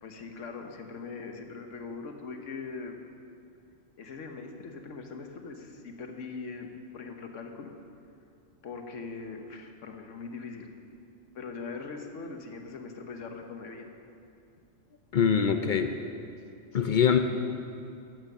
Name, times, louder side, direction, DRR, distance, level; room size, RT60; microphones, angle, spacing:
voice 1, 0.0-2.9 4.0-6.7 6.9-7.7 8.6-10.7 11.3-13.9, left 4 dB, 75° left, 5 dB, 1.3 m, -41 dB
voice 2, 15.1-15.9 16.7-17.2, left 7 dB, 55° left, 7 dB, 0.6 m, -23 dB
11.0 x 8.9 x 6.6 m, 2.6 s
omnidirectional pair, 1.3 m